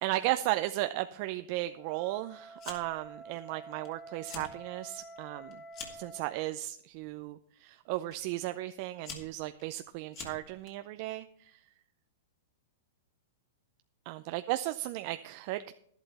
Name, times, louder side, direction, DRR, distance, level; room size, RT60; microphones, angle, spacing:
voice 1, 0.0-5.6 5.9-11.6 14.1-15.7, right 16 dB, 50° right, 10 dB, 0.5 m, -35 dB
Wind instrument woodwind instrument, 1.7-6.3, right 2 dB, 5° left, 0.7 m, -49 dB
Fire, 2.6-3.1 3.4-3.9 4.2-4.5 5.0-6.1 6.9-7.2 8.1-8.2 8.8-10.7, left 6 dB, 40° left, 2.9 m, -46 dB
11.5 x 11.0 x 4.1 m, 0.68 s
hypercardioid pair, 130°, 0 cm